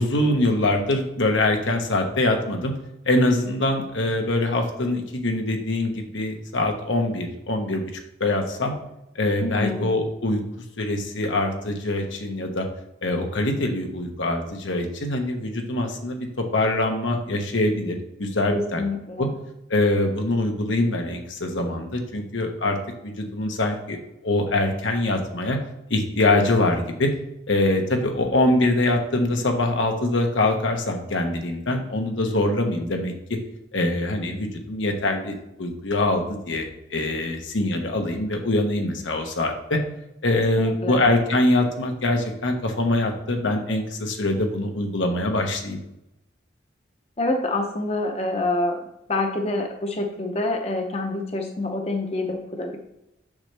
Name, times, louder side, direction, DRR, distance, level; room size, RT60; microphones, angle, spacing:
voice 1, 0.0-2.7 3.0-7.8 8.2-8.7 9.1-10.4 10.8-12.7 13.0-16.3 16.5-18.8 19.2-19.3 19.7-22.8 23.0-24.0 24.2-25.6 25.9-27.1 27.5-33.1 33.7-39.8 40.2-45.8, left 2 dB, 80° left, 3 dB, 1.1 m, -23 dB
voice 2, 9.4-9.9 18.5-19.4 40.4-41.1 47.2-48.8 49.1-52.8, left 2 dB, 30° left, 3 dB, 0.7 m, -27 dB
7.1 x 6.6 x 3.4 m, 0.88 s
head